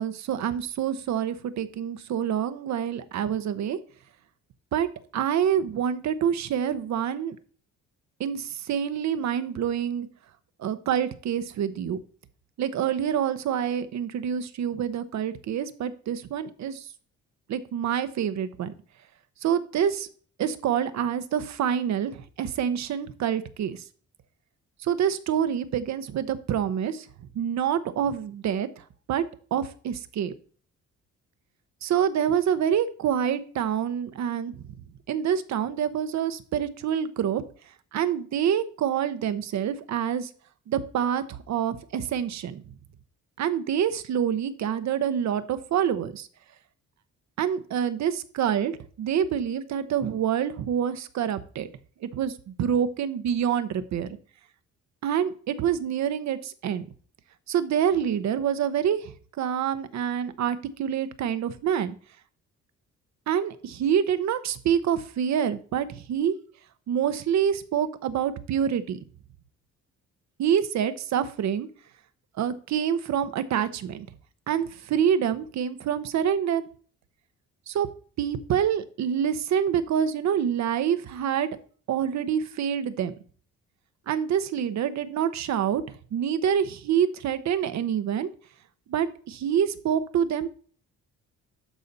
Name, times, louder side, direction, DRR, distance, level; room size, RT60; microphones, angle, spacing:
voice 1, 0.0-3.8 4.7-4.9 5.1-7.4 8.2-10.1 10.6-12.0 12.6-16.9 17.5-18.7 19.4-20.1 20.4-23.8 24.8-27.1 27.3-28.8 29.1-29.2 29.5-30.3 31.8-34.6 35.1-37.4 37.9-40.3 40.7-42.6 43.4-46.3 47.4-51.7 52.0-54.2 55.0-56.9 57.5-62.0 63.3-66.4 66.9-69.0 70.4-71.7 72.4-74.1 74.5-76.6 77.7-77.9 78.2-81.5 81.9-83.1 84.1-85.8 86.1-88.3 88.9-90.5, right 8 dB, 65° right, 12 dB, 0.8 m, -26 dB
12.0 x 4.2 x 4.0 m, 0.43 s
cardioid pair, 90°, 30 cm